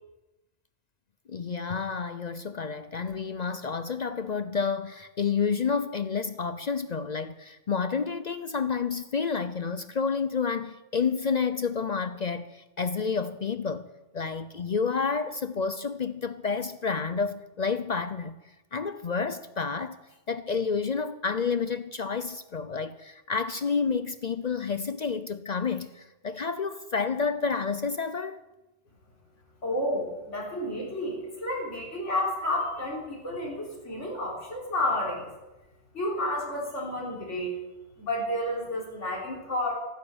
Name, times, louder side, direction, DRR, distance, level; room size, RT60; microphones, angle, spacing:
voice 1, 1.3-18.3 18.7-20.0 20.3-28.4, left 5 dB, 50° left, 0.6 m, -30 dB
voice 2, 29.6-35.3 35.9-37.6 38.0-39.8, left 1 dB, 90° left, 4.0 m, -31 dB
16.0 x 9.8 x 7.2 m
omnidirectional pair, 1.2 m